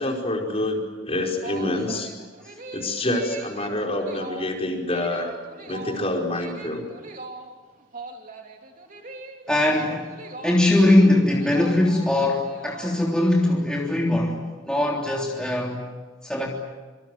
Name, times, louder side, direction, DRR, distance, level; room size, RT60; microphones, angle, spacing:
voice 1, 0.0-2.1 2.7-5.3 5.6-6.8, left 1 dB, 35° left, 1 dB, 5.0 m, -27 dB
sound 1, 1.3-13.3, right 3 dB, 45° right, 3.3 m, -41 dB
voice 2, 9.5-10.1 10.4-15.8 16.2-16.5, left 1 dB, 5° left, -3 dB, 3.5 m, -21 dB
27.0 x 26.0 x 7.8 m, 1.4 s
head